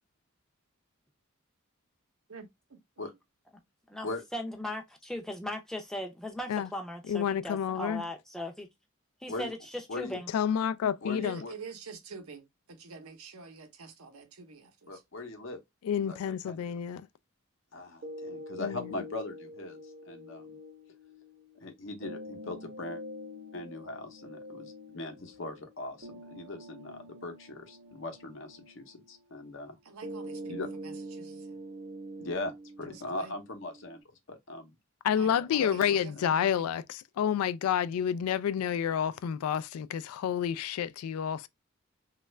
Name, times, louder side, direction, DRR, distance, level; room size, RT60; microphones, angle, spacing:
voice 1, 2.3-3.1 11.1-15.0 29.8-31.6 32.8-33.3 35.1-36.6, right 4 dB, 85° right, 0.8 m, -47 dB
voice 2, 3.9-8.7 9.2-10.3, left 1 dB, ahead, 0.5 m, -38 dB
voice 3, 7.1-8.0 10.3-11.4 15.8-17.1 18.6-18.9 35.0-41.5, left 8 dB, 85° left, 0.3 m, -29 dB
voice 4, 11.0-11.5 14.9-15.6 16.1-16.6 17.7-19.8 20.1-20.6 21.5-23.0 23.5-29.8 30.5-30.7 32.2-34.0 34.3-34.7 35.6-36.3, left 2 dB, 60° left, 0.7 m, -40 dB
sound 1, 18.0-34.0, equal, 55° right, 0.9 m, -45 dB
3.1 x 2.4 x 3.1 m
head